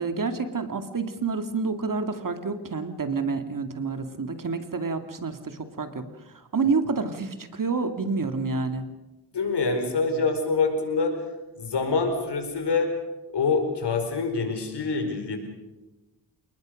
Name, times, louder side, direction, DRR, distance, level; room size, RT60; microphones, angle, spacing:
voice 1, 0.0-8.9, right 4 dB, 50° right, 8 dB, 2.4 m, -28 dB
voice 2, 9.3-11.2 11.6-12.9 13.3-15.4, left 4 dB, 80° left, 6 dB, 4.9 m, -25 dB
29.5 x 19.5 x 6.5 m, 1.0 s
cardioid pair, 70°, 40 cm